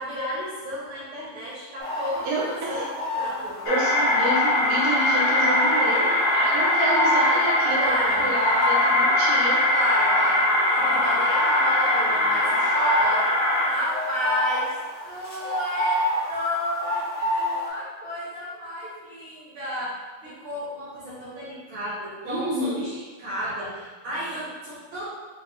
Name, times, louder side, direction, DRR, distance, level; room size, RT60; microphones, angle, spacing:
voice 1, 0.0-3.6 7.8-8.3 9.7-13.3 13.6-14.7 15.1-25.1, equal, 70° right, -8 dB, 1.8 m, -32 dB
sound 1, 1.8-17.7, left 1 dB, 45° left, 1.0 m, -30 dB
voice 2, 2.2-2.9 3.7-9.6 22.2-22.9, right 1 dB, 85° right, -5 dB, 2.6 m, -29 dB
sound 2, 3.7-13.7, left 1 dB, 80° left, 2.5 m, -21 dB
5.7 x 2.0 x 3.6 m, 1.3 s
omnidirectional pair, 4.0 m